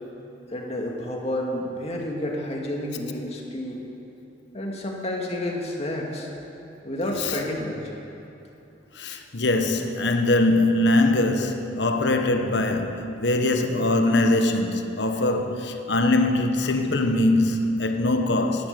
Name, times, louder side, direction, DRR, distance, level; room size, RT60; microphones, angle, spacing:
voice 1, 0.5-3.8 4.5-6.3 6.8-7.8, left 1 dB, 35° left, 2.2 m, -30 dB
voice 2, 8.9-18.7, left 2 dB, 70° left, 1.2 m, -22 dB
16.5 x 11.5 x 6.8 m
head